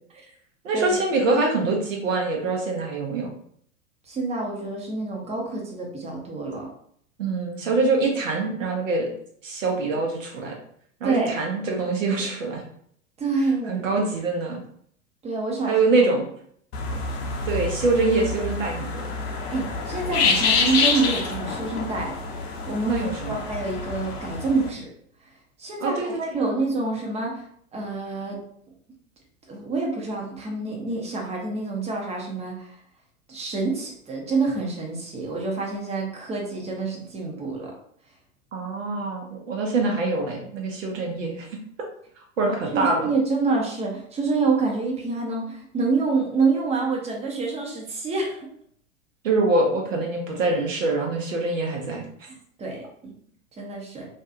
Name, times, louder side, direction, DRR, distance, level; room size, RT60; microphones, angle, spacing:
voice 1, 0.6-3.3 7.2-9.1 9.4-10.6 11.0-12.6 13.7-14.6 15.6-16.2 17.5-19.1 22.8-23.4 25.8-26.1 38.5-41.5 42.4-43.1 49.2-52.0, right 3 dB, 75° right, 1 dB, 0.9 m, -24 dB
voice 2, 4.1-6.7 11.0-11.3 13.2-13.9 15.2-15.7 16.9-17.0 19.5-22.1 22.7-24.9 25.6-27.4 27.7-28.4 29.5-32.7 33.3-37.7 42.7-48.5 52.3-53.1 53.6-54.1, right 3 dB, 15° right, -1 dB, 0.7 m, -27 dB
sound 1, 16.7-24.7, left 4 dB, 50° left, 0.6 m, -27 dB
2.6 x 2.3 x 2.5 m, 0.64 s
figure-of-eight pair, 90°, 39 cm